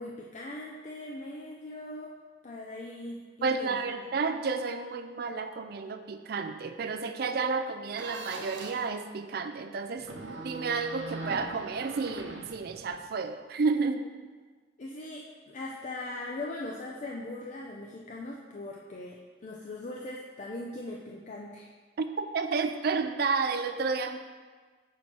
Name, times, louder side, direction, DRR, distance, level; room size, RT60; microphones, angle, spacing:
voice 1, 0.0-2.1 2.4-3.8 14.8-21.7, left 2 dB, 40° left, -2 dB, 0.4 m, -40 dB
voice 2, 3.4-10.1 10.4-14.1 22.0-24.2, right 4 dB, 55° right, 9 dB, 0.4 m, -31 dB
sound 1, 8.0-8.9 10.0-13.1, right 2 dB, 75° right, 0.8 m, -41 dB
6.1 x 4.2 x 4.4 m, 1.5 s
head